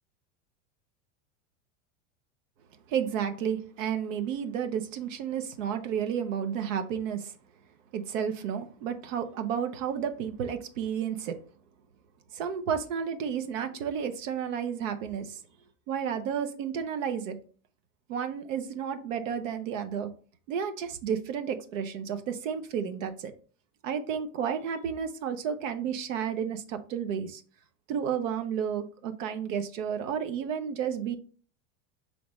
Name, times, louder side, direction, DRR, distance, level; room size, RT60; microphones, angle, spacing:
voice 1, 2.9-7.3 7.9-11.4 12.3-15.4 15.9-17.4 18.1-20.1 20.5-23.3 23.8-27.4 27.9-31.2, right 8 dB, 80° right, 8 dB, 0.9 m, -32 dB
5.1 x 3.3 x 3.1 m, 0.40 s
supercardioid pair, 125°, 38 cm